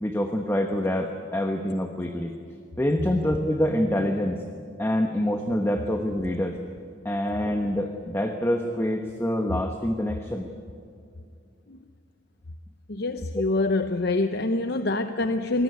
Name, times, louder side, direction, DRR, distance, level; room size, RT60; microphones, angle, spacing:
voice 1, 0.0-2.3 2.8-4.4 4.8-6.6 7.0-10.5, left 1 dB, 10° left, 4 dB, 1.1 m, -26 dB
voice 2, 12.9-15.6, left 2 dB, 55° left, 8 dB, 0.8 m, -25 dB
23.5 x 19.5 x 9.6 m, 2.4 s
head